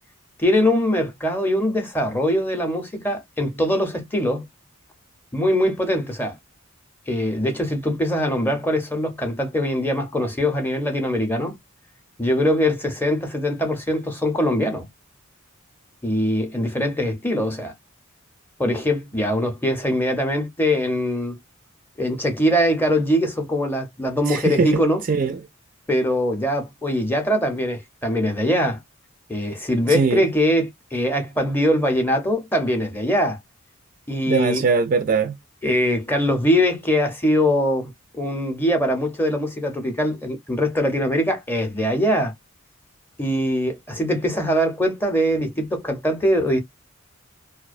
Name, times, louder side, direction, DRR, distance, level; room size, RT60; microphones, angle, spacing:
voice 1, 0.4-4.4 5.3-6.3 7.1-11.6 12.2-14.8 16.0-17.7 18.6-21.4 22.0-25.0 25.9-28.8 29.3-33.4 34.1-34.6 35.6-42.3 43.2-46.6, equal, 10° left, 0.6 m, -22 dB
voice 2, 24.3-24.8 25.1-25.4 29.9-30.3 34.3-35.4, right 5 dB, 40° right, 0.3 m, -21 dB
2.4 x 2.1 x 2.4 m
head